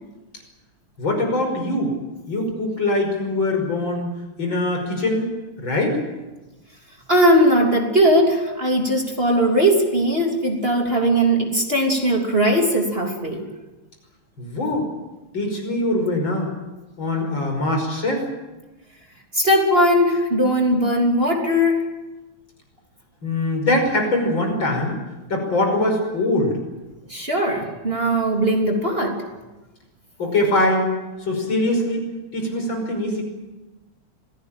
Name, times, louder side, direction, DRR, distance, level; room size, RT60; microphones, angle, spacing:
voice 1, 1.0-1.9 2.3-4.1 4.4-5.3 5.6-6.0 14.4-14.9 15.3-16.5 17.0-18.2 23.2-25.0 25.3-26.5 30.2-32.0 32.3-33.2, left 1 dB, 60° left, 3 dB, 6.3 m, -22 dB
voice 2, 7.1-13.4 19.3-21.9 27.1-29.2, equal, 25° right, 1 dB, 3.4 m, -19 dB
25.5 x 17.5 x 9.0 m, 1.1 s
omnidirectional pair, 2.4 m